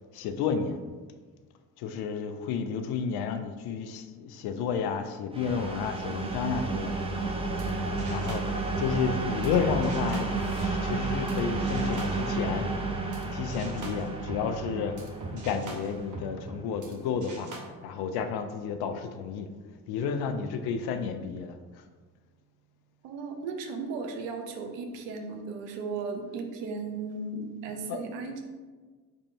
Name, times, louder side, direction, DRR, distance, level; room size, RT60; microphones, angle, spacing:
voice 1, 0.1-0.8 1.8-7.1 8.1-12.7 13.3-15.0 15.3-17.5 17.8-19.5 19.9-21.9 27.9-28.0, left 6 dB, 55° left, 8 dB, 0.5 m, -31 dB
sound 1, 5.3-17.0, right 3 dB, 10° right, 0.6 m, -32 dB
sound 2, 7.2-13.2 13.5-16.9 17.2-17.6, right 3 dB, 40° right, 0.9 m, -41 dB
Guitar, 11.8-19.7, right 6 dB, 25° left, 0.9 m, -50 dB
voice 2, 23.0-28.5, right 4 dB, 65° right, 4 dB, 0.7 m, -36 dB
3.5 x 2.6 x 4.3 m, 1.4 s
hypercardioid pair, 50°, 47 cm